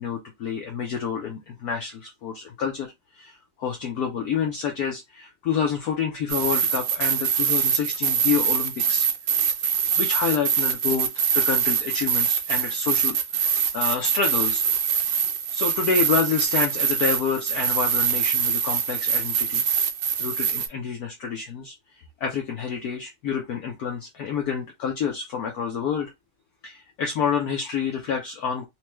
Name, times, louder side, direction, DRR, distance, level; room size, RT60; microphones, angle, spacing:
voice 1, 0.0-9.1 9.6-11.1 11.3-14.6 15.5-19.6 20.2-26.1 26.6-28.7, left 6 dB, 65° left, 1.0 m, -28 dB
sound 1, 6.3-20.7, right 7 dB, 75° right, 1.3 m, -24 dB
4.3 x 2.2 x 3.0 m
omnidirectional pair, 2.0 m